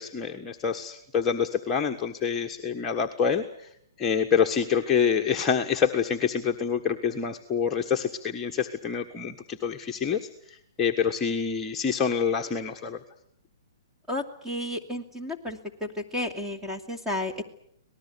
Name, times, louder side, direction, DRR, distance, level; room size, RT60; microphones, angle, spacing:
voice 1, 0.0-3.7 4.0-13.0, left 7 dB, 15° left, 1 dB, 1.4 m, -27 dB
voice 2, 14.1-17.4, left 1 dB, 10° right, 3 dB, 2.6 m, -32 dB
25.5 x 19.5 x 8.5 m, 0.70 s
hypercardioid pair, 135°, 2 cm